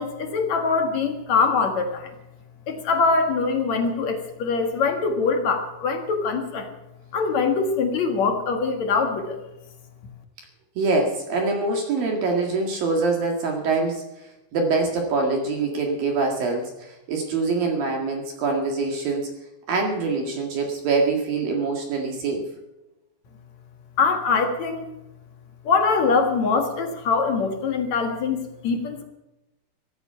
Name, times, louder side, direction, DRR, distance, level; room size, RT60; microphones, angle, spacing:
voice 1, 0.0-2.1 2.7-6.7 7.1-9.4 24.0-24.9 25.6-29.0, left 4 dB, 55° left, 5 dB, 2.0 m, -23 dB
voice 2, 10.8-19.3 19.7-22.5, right 3 dB, 55° right, 2 dB, 3.3 m, -24 dB
17.0 x 14.0 x 5.7 m, 0.96 s
omnidirectional pair, 5.5 m